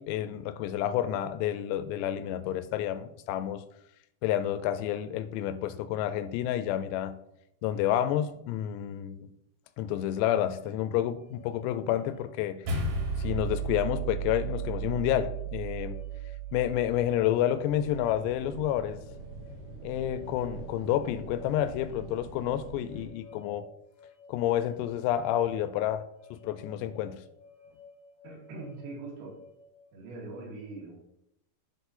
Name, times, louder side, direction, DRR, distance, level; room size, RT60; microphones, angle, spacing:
voice 1, 0.0-3.6 4.2-7.2 7.6-9.3 9.8-12.6 13.2-16.0 16.5-19.0 19.8-23.7 24.3-26.0 26.3-27.2, left 11 dB, 90° left, 2.7 m, -29 dB
sound 1, 11.2-29.9, left 4 dB, 15° right, 1.2 m, -55 dB
sound 2, 12.7-17.2, right 4 dB, 85° right, 3.7 m, -34 dB
sound 3, 17.6-23.1, right 4 dB, 50° right, 4.0 m, -45 dB
voice 2, 28.2-29.4 29.9-31.0, right 3 dB, 70° right, 4.0 m, -42 dB
12.0 x 4.0 x 4.2 m
omnidirectional pair, 4.9 m